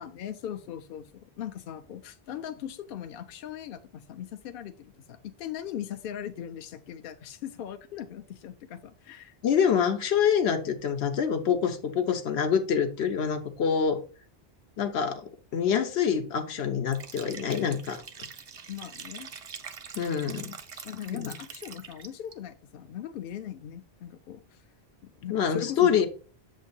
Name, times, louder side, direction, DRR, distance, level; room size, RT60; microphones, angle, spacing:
voice 1, 0.0-9.4 18.7-19.3 20.8-24.6 25.0-26.1, left 10 dB, 65° left, 7 dB, 0.7 m, -39 dB
voice 2, 9.4-14.0 14.8-18.0 20.0-20.5 21.1-21.3 25.3-26.1, left 7 dB, 80° left, 7 dB, 1.1 m, -26 dB
Liquid, 16.9-22.3, right 6 dB, 45° right, 0.5 m, -44 dB
7.2 x 2.6 x 5.3 m, 0.38 s
omnidirectional pair, 1.1 m